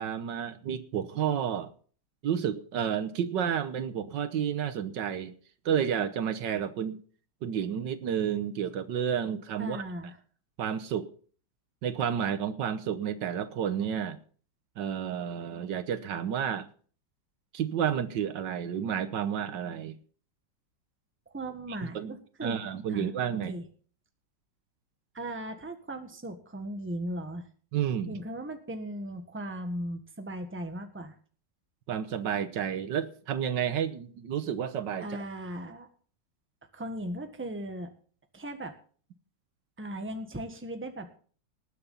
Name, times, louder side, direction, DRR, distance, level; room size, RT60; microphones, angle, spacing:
voice 1, 0.0-1.7 2.2-5.3 5.6-7.0 7.4-9.8 10.6-11.1 11.8-14.2 14.8-16.7 17.5-19.9 21.9-22.2 22.4-23.6 27.7-28.2 31.9-35.2, right 8 dB, 75° right, 11 dB, 1.6 m, -31 dB
voice 2, 9.6-10.2 21.3-22.6 22.9-23.1 23.5-23.6 25.1-27.4 28.1-31.1 35.0-35.9 36.7-37.9 38.3-38.7 39.8-41.2, right 1 dB, 5° right, 6 dB, 1.3 m, -37 dB
19.5 x 7.0 x 5.6 m, 0.44 s
omnidirectional pair, 2.0 m